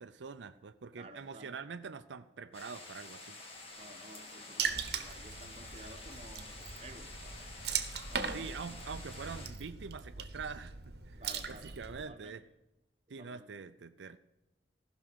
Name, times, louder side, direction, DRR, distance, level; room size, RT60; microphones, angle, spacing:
voice 1, 0.0-3.4 8.3-12.4 13.1-14.2, right 5 dB, 90° right, 10 dB, 0.5 m, -45 dB
voice 2, 1.0-1.5 3.7-8.6 11.2-11.7 12.1-12.4 13.2-13.5, right 1 dB, 35° right, 5 dB, 1.2 m, -54 dB
sound 1, 2.5-9.5, left 2 dB, 35° left, 1.8 m, -49 dB
Water / Splash splatter, 4.6-12.0, right 6 dB, 65° right, 1.1 m, -40 dB
15.0 x 6.1 x 6.2 m, 1.0 s
head